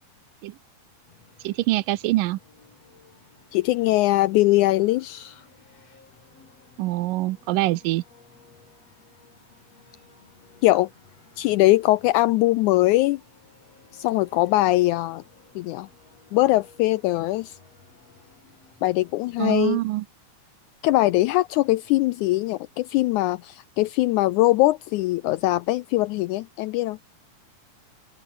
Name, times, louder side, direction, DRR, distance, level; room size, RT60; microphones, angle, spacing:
sound 1, 1.1-19.7, left 5 dB, 45° left, 5.2 m, -55 dB
voice 1, 1.4-2.4 6.8-8.0 19.4-20.0, right 17 dB, 80° right, 2.4 m, -24 dB
voice 2, 3.5-5.4 10.6-10.9 11.4-13.2 13.9-15.2 15.5-15.9 16.3-17.6 18.8-19.8 20.8-27.0, left 17 dB, 80° left, 1.7 m, -21 dB
open air
omnidirectional pair, 3.9 m